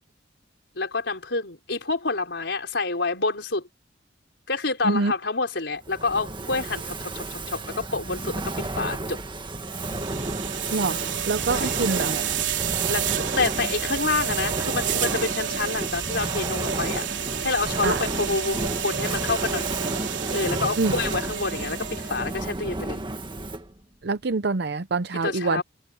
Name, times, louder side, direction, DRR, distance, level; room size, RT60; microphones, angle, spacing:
voice 1, 0.7-3.6 4.5-9.2 10.9-11.8 12.9-17.0 17.4-19.7 20.3-23.0 25.2-25.6, left 3 dB, 75° left, 5.0 m, -28 dB
Fire, 5.8-23.8, right 2 dB, 25° right, 1.7 m, -32 dB
sound 1, 9.6-22.3, right 9 dB, 85° right, 3.4 m, -30 dB
voice 2, 11.3-12.3 17.8-18.0 20.8-20.9 24.0-25.6, right 3 dB, 65° right, 0.7 m, -25 dB
head